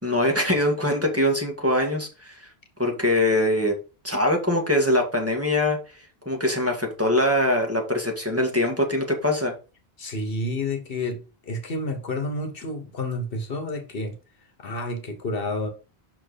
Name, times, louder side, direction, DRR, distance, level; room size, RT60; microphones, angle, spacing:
voice 1, 0.0-2.5 2.8-3.7 4.0-5.8 6.2-9.5, left 1 dB, 15° right, 1.5 m, -23 dB
voice 2, 10.0-14.1 14.6-15.7, left 2 dB, 65° left, 1.3 m, -30 dB
6.2 x 4.4 x 5.0 m
omnidirectional pair, 1.0 m